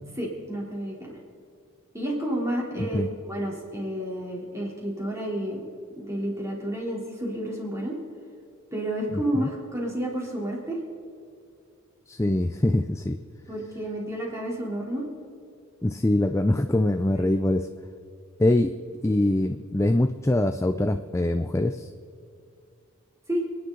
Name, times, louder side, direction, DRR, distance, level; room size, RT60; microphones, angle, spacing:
voice 1, 0.2-1.2 1.9-5.6 6.0-8.0 8.7-10.8 13.5-15.1 17.2-17.3 23.3-23.4, right 1 dB, 15° right, -3 dB, 3.5 m, -30 dB
voice 2, 2.8-3.1 9.1-9.5 12.1-13.2 15.8-17.7 18.4-18.7 19.0-21.9, left 1 dB, 15° left, 8 dB, 0.4 m, -23 dB
28.5 x 10.0 x 3.9 m, 2.4 s
head